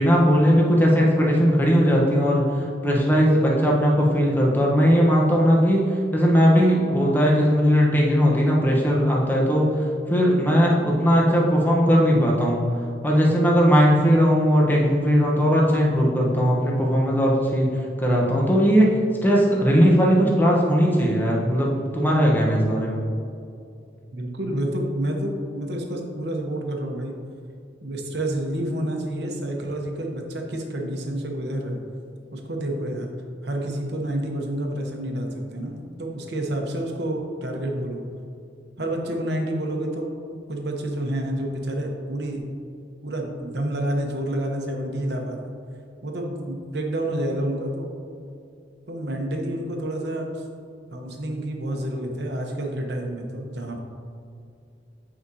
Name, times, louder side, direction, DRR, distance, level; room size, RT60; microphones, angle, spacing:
voice 1, 0.0-2.4 2.8-5.8 6.1-9.6 10.1-12.6 13.0-17.7 18.0-18.9 19.2-23.0, equal, 10° left, -3 dB, 1.0 m, -18 dB
voice 2, 24.1-27.1 27.8-31.8 32.3-33.1 33.4-38.0 38.8-40.2 40.5-42.5 43.0-45.4 46.0-47.9 48.9-50.3 50.9-53.8, right 1 dB, 65° right, 2 dB, 0.9 m, -29 dB
8.8 x 5.0 x 2.8 m, 2.5 s
head